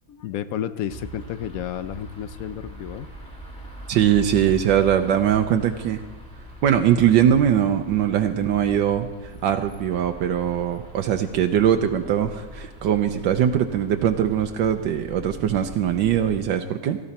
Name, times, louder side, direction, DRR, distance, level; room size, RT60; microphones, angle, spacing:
voice 1, 0.1-3.1, left 10 dB, 70° left, 13 dB, 0.8 m, -31 dB
sound 1, 0.9-16.5, equal, 5° left, 2.3 m, -41 dB
voice 2, 3.9-6.0 6.6-17.0, right 9 dB, 80° right, 6 dB, 1.4 m, -21 dB
17.5 x 14.5 x 4.2 m, 1.4 s
omnidirectional pair, 2.0 m